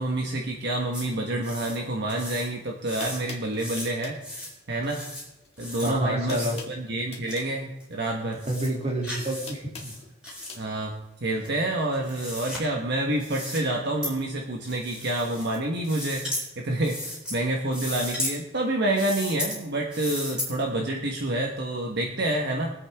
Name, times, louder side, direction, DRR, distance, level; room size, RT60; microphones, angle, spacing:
voice 1, 0.0-4.2 4.7-5.0 5.6-8.4 10.5-10.9 11.2-16.3 16.6-22.7, right 1 dB, 60° right, 0 dB, 1.3 m, -28 dB
sound 1, 0.9-1.1 1.4-1.8 2.1-2.5 2.9-3.2 3.5-3.9 4.2-4.5 4.8-5.2 5.6-5.9 6.3-6.6 7.3-7.4 7.8-7.9 8.3-8.7 9.0-9.5 9.7-10.5 11.4-12.6 13.2-13.6 14.0-14.1 14.6-15.5 15.8-16.4 16.8-17.4 17.7-18.3 18.9-19.6 19.9-20.5, left 1 dB, 5° right, 4.4 m, -35 dB
sound 2, 2.5-2.6 3.0-4.2 5.4-5.7 6.0-7.6 8.7-10.6, left 4 dB, 30° left, 2.0 m, -44 dB
voice 2, 5.8-6.5 8.5-9.9, right 1 dB, 30° right, -1 dB, 2.6 m, -29 dB
23.0 x 8.4 x 3.5 m, 0.94 s
head